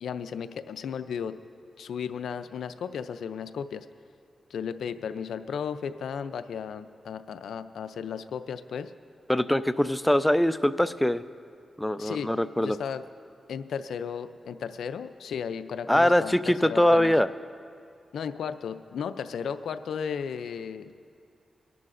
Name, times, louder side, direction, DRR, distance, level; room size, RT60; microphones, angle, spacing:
voice 1, 0.0-1.3 1.8-3.9 4.5-8.9 12.0-12.3 12.6-13.0 13.5-17.1 18.1-20.9, left 7 dB, 85° left, 12 dB, 0.4 m, -34 dB
voice 2, 9.3-11.2 11.8-12.8 15.9-17.3, left 1 dB, 5° left, 13 dB, 0.4 m, -23 dB
24.0 x 11.0 x 2.5 m, 2.5 s
cardioid pair, 55°, 0 cm